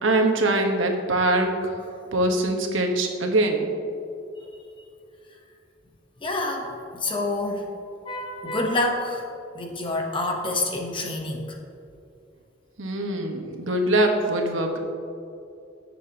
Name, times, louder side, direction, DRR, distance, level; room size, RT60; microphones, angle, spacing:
voice 1, 0.0-1.7 2.1-3.7 12.8-14.8, right 2 dB, 85° right, 3 dB, 1.3 m, -23 dB
voice 2, 6.2-7.7 8.0-9.2 9.5-11.6, left 2 dB, 25° left, 1 dB, 1.1 m, -27 dB
18.0 x 7.1 x 3.0 m, 2.5 s
head